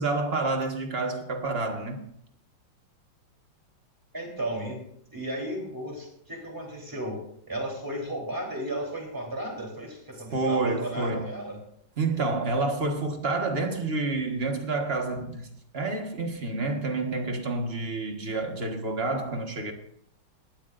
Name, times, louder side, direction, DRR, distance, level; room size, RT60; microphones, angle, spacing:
voice 1, 0.0-2.0 10.3-11.3 12.0-15.5 15.7-19.7, right 3 dB, 35° right, 1.5 m, -28 dB
voice 2, 4.1-4.9 5.1-7.2 7.5-11.6, right 1 dB, 10° right, 3.4 m, -34 dB
19.0 x 12.5 x 2.6 m
omnidirectional pair, 2.2 m